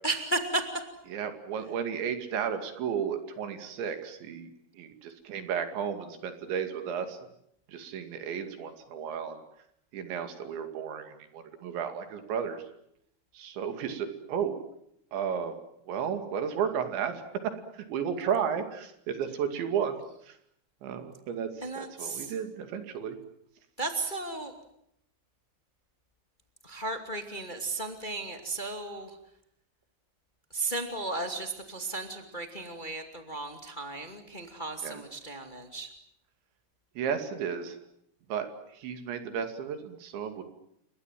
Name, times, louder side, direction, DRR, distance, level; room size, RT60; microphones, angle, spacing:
voice 1, 0.0-0.6 21.6-22.3 23.8-24.5 26.6-29.1 30.5-35.9, right 2 dB, 35° left, 5 dB, 0.7 m, -34 dB
voice 2, 1.1-4.5 4.8-7.2 7.7-9.4 9.9-12.7 13.3-14.6 15.1-15.6 15.9-17.2 17.7-20.0 20.2-20.4 20.8-23.2 34.8-35.0 37.0-37.8 38.3-40.4, right 7 dB, 65° right, 7 dB, 4.5 m, -33 dB
29.0 x 24.5 x 7.6 m, 0.75 s
omnidirectional pair, 5.8 m